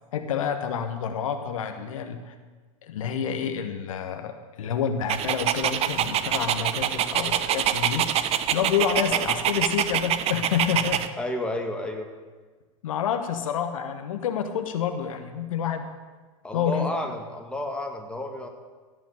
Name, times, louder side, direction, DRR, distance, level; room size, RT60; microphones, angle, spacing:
voice 1, 0.1-2.3 2.8-8.1 8.5-11.1 12.8-15.9 16.5-16.9, left 8 dB, 70° left, 6 dB, 1.2 m, -28 dB
Dog, 5.1-11.1, right 10 dB, 35° right, 0.8 m, -25 dB
voice 2, 11.2-12.1 16.4-18.5, left 1 dB, 5° left, 2 dB, 2.0 m, -31 dB
16.0 x 5.7 x 8.7 m, 1.4 s
hypercardioid pair, 95°, 18 cm